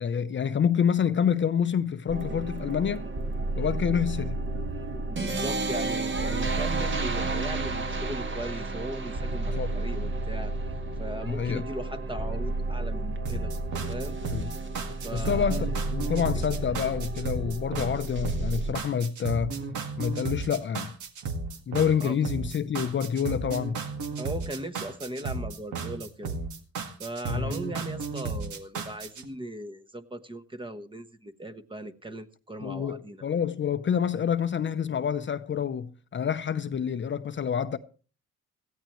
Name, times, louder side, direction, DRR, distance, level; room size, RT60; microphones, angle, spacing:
voice 1, 0.0-3.1 3.6-4.4 9.5-9.7 11.2-11.6 14.2-14.5 15.1-19.5 20.0-20.9 21.7-23.8 27.3-27.6 32.6-37.8, left 7 dB, 40° left, 0.7 m, -27 dB
sound 1, 2.1-18.7, right 2 dB, 40° right, 1.7 m, -31 dB
voice 2, 5.1-10.5 11.0-13.5 13.9-14.2 15.0-15.6 22.0-22.2 24.2-26.4 27.0-33.2, right 1 dB, 15° right, 1.1 m, -38 dB
sound 2, 13.2-29.2, right 4 dB, 80° right, 1.9 m, -34 dB
17.5 x 14.5 x 3.1 m
cardioid pair, 90°, 30 cm